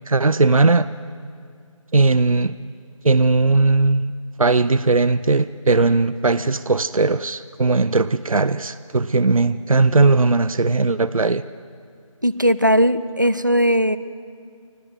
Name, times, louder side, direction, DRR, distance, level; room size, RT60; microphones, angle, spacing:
voice 1, 0.1-0.9 1.9-2.5 3.0-4.1 4.4-11.4, right 3 dB, 75° right, 15 dB, 0.6 m, -18 dB
voice 2, 12.2-14.0, equal, 35° right, 15 dB, 0.5 m, -18 dB
25.0 x 15.5 x 7.9 m, 2.2 s
figure-of-eight pair, 180°, 18 cm